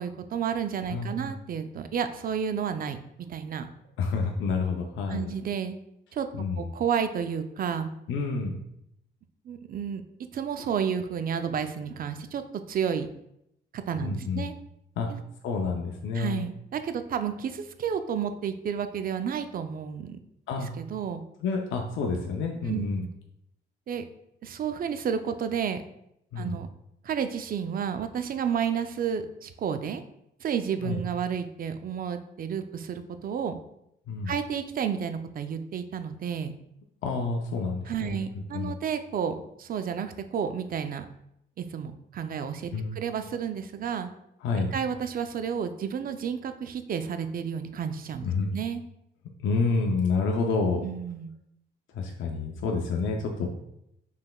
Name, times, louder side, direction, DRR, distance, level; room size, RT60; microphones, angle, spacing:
voice 1, 0.0-3.7 5.1-5.8 6.1-6.3 6.6-7.9 9.5-10.0 10.3-12.4 12.7-13.1 13.7-14.5 15.1-15.2 16.1-20.2 20.8-21.2 22.7-22.9 23.9-24.0 24.4-25.8 26.4-26.7 27.0-30.0 30.4-33.6 34.3-36.5 37.9-41.1 41.6-44.1 44.6-48.3 48.5-48.8 50.8-51.3, right 7 dB, 45° right, 9 dB, 0.4 m, -31 dB
voice 2, 0.9-1.3 4.0-5.3 6.3-6.7 8.1-8.6 14.0-14.5 15.0-15.1 15.4-16.5 20.5-20.7 21.4-23.0 26.3-26.6 30.8-31.0 34.1-34.3 37.0-38.2 38.5-38.7 42.7-43.0 44.4-44.7 48.2-48.5 49.4-50.8 51.9-53.5, left 4 dB, 75° left, 1 dB, 0.6 m, -28 dB
5.5 x 3.3 x 2.3 m, 0.78 s
cardioid pair, 90°, 20 cm